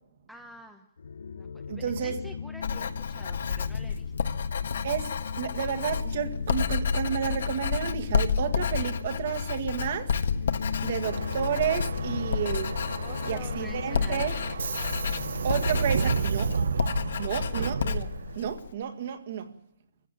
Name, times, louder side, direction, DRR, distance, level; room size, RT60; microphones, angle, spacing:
voice 1, 0.3-0.9 1.4-4.3 13.0-14.6 17.4-17.8, equal, ahead, 0.9 m, -49 dB
sound 1, 1.0-17.2, left 5 dB, 90° left, 0.9 m, -37 dB
voice 2, 1.7-2.2 4.8-10.1 10.8-12.7 13.2-14.3 15.4-16.6 17.2-18.1 18.4-19.5, right 8 dB, 40° right, 1.8 m, -31 dB
Writing, 2.6-18.7, left 6 dB, 60° left, 1.4 m, -31 dB
Subway metro underground, 11.0-18.5, right 6 dB, 70° right, 0.8 m, -32 dB
26.0 x 15.5 x 9.2 m
hypercardioid pair, 175°, 0 cm